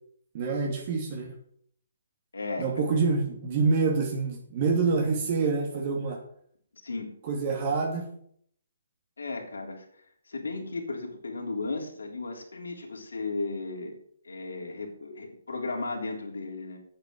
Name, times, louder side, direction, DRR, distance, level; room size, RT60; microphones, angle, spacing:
voice 1, 0.3-1.3 2.6-6.2 7.2-8.0, right 4 dB, 40° right, 0 dB, 2.7 m, -26 dB
voice 2, 2.3-3.0 6.8-7.1 9.2-9.9 10.3-14.0 14.2-16.8, left 3 dB, 80° left, 0 dB, 3.6 m, -35 dB
8.8 x 8.6 x 7.8 m, 0.64 s
hypercardioid pair, 145°, 0 cm